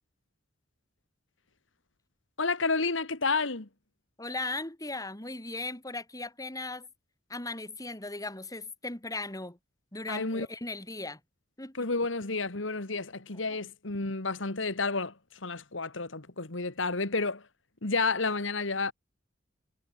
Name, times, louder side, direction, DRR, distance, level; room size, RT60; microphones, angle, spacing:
voice 1, 2.4-3.7 10.1-10.5 11.7-17.4 17.8-18.9, left 3 dB, 80° left, 2.1 m, -30 dB
voice 2, 4.2-6.9 7.3-9.6 9.9-11.2 11.6-11.8 13.5-13.6, left 2 dB, 20° left, 3.9 m, -37 dB
head